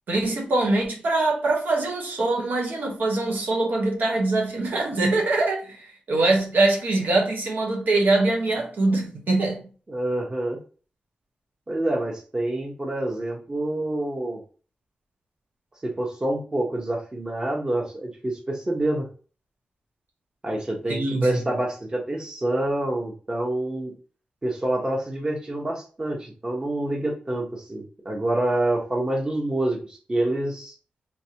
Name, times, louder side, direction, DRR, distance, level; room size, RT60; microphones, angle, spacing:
voice 1, 0.1-9.7 20.9-21.4, right 2 dB, 80° right, 1.1 m, -23 dB
voice 2, 9.9-10.6 11.7-14.4 15.8-19.1 20.4-23.9 24.4-30.7, right 1 dB, 25° right, 1.0 m, -27 dB
3.6 x 2.9 x 2.8 m
wide cardioid pair, 95°, 3 cm